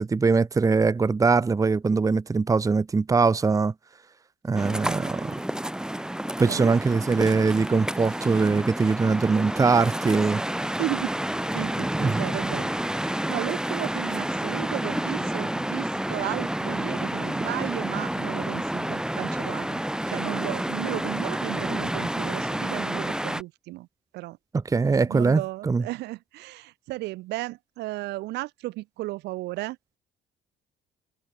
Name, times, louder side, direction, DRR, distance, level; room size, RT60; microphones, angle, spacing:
voice 1, 0.0-3.7 4.4-5.3 6.4-10.4 12.0-12.2 24.7-25.8, right 4 dB, 20° right, 0.9 m, -22 dB
sound 1, 4.5-23.4, right 1 dB, 5° right, 1.8 m, -29 dB
voice 2, 4.5-4.8 6.4-6.7 10.8-11.1 11.5-19.8 20.1-23.9 24.1-24.4 24.8-29.8, right 19 dB, 85° right, 3.6 m, -34 dB
cardioid pair, 110°, 17 cm